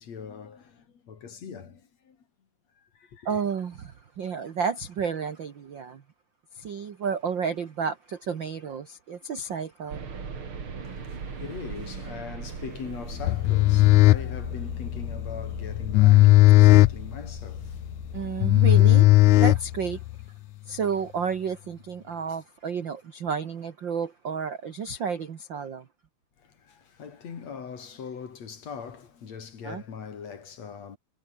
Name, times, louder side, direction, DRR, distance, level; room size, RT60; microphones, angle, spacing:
voice 1, 0.0-2.2 2.8-3.4 10.8-18.5 26.4-31.0, left 6 dB, 50° left, 3.6 m, -41 dB
voice 2, 3.2-6.0 6.5-10.0 16.7-16.8 18.1-19.0 19.4-20.0 20.7-25.9 29.6-29.8, right 6 dB, 55° right, 1.3 m, -31 dB
sound 1, 9.9-19.8, right 5 dB, 40° right, 3.4 m, -40 dB
sound 2, 13.2-20.1, left 18 dB, 75° left, 1.8 m, -18 dB
omnidirectional pair, 4.0 m